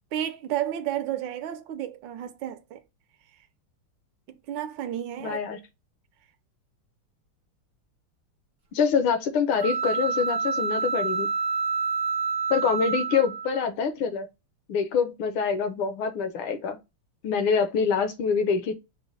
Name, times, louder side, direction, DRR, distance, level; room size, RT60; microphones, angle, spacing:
voice 1, 0.1-2.8 4.3-5.4, right 11 dB, 70° right, 1.2 m, -32 dB
voice 2, 5.2-5.6 8.7-11.3 12.5-14.3 14.7-16.8 17.2-18.7, left 6 dB, 75° left, 1.6 m, -25 dB
sound 1, 9.6-13.7, right 5 dB, 25° right, 0.7 m, -28 dB
5.0 x 2.1 x 3.9 m
omnidirectional pair, 2.4 m